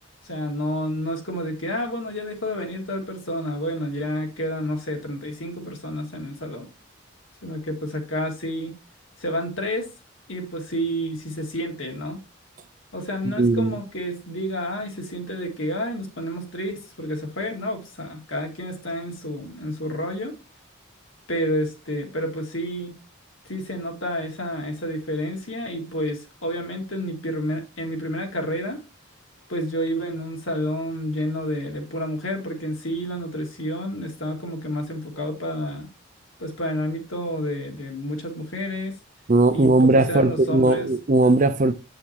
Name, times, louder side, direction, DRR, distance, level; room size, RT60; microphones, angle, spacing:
voice 1, 0.2-6.7 7.4-8.7 9.2-9.9 10.3-12.2 12.9-20.3 21.3-23.0 23.5-28.8 29.5-35.9 36.4-38.9 39.5-39.7 40.1-40.9, equal, 70° left, 2.3 m, -29 dB
voice 2, 13.2-13.7 39.3-41.7, right 2 dB, 40° right, 0.5 m, -18 dB
8.3 x 6.5 x 2.9 m
head